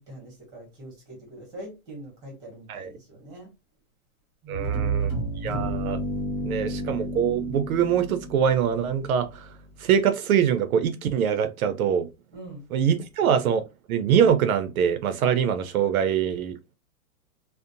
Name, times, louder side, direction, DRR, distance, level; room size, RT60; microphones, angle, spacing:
voice 1, 0.0-3.5 4.4-5.2 6.3-6.8 12.3-12.6, right 1 dB, 10° right, 0.9 m, -43 dB
sound 1, 4.5-9.4, right 2 dB, 10° left, 0.6 m, -31 dB
voice 2, 4.5-5.1 5.4-6.0 6.4-9.5 9.8-12.1 12.7-13.6 13.9-16.7, right 8 dB, 70° right, 0.5 m, -23 dB
2.5 x 2.1 x 2.6 m
hypercardioid pair, 165°, 45 cm